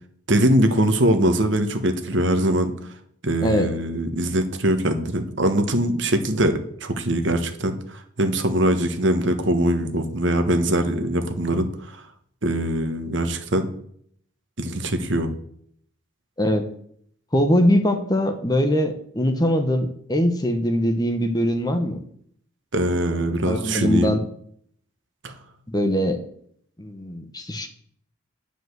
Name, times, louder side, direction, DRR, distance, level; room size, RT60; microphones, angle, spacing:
voice 1, 0.3-2.7 3.2-12.0 12.4-13.7 14.6-15.3 22.7-24.2 25.2-25.3, right 1 dB, 60° right, 7 dB, 1.3 m, -22 dB
voice 2, 3.4-3.7 16.4-16.6 17.3-22.0 23.4-24.2 25.7-26.2 26.8-27.7, equal, 20° left, 6 dB, 1.0 m, -22 dB
10.0 x 5.1 x 8.0 m, 0.65 s
head